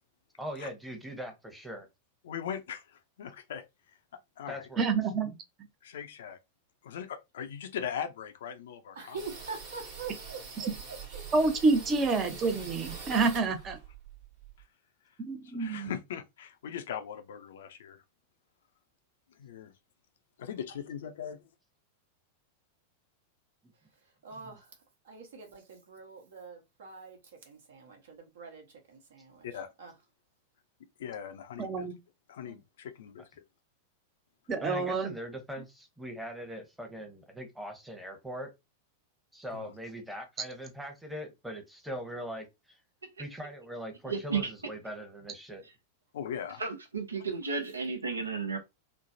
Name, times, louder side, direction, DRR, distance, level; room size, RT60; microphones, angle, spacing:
voice 1, 0.4-1.9 4.5-4.8 24.4-24.6 34.6-38.5 39.3-42.8 43.2-45.6, equal, 5° right, 0.9 m, -41 dB
voice 2, 2.2-2.8 3.2-3.6 4.4-4.7 5.8-6.4 6.8-9.2 15.5-18.0 19.4-19.7 20.4-21.4 29.4-29.7 31.0-31.9 32.3-33.2 39.5-39.7 46.1-46.6, left 8 dB, 60° left, 0.4 m, -39 dB
voice 3, 4.8-5.4 10.6-10.7 11.3-13.8 15.2-15.9 31.6-32.0 34.5-35.1, right 3 dB, 25° right, 0.6 m, -28 dB
voice 4, 8.9-11.2 24.0-29.9 32.4-32.6, right 4 dB, 60° right, 1.1 m, -45 dB
sound 1, 9.2-14.6, right 5 dB, 45° right, 1.2 m, -44 dB
voice 5, 44.1-44.5 46.6-48.6, right 5 dB, 80° right, 0.6 m, -33 dB
3.2 x 2.0 x 2.6 m
figure-of-eight pair, 90°, 0 cm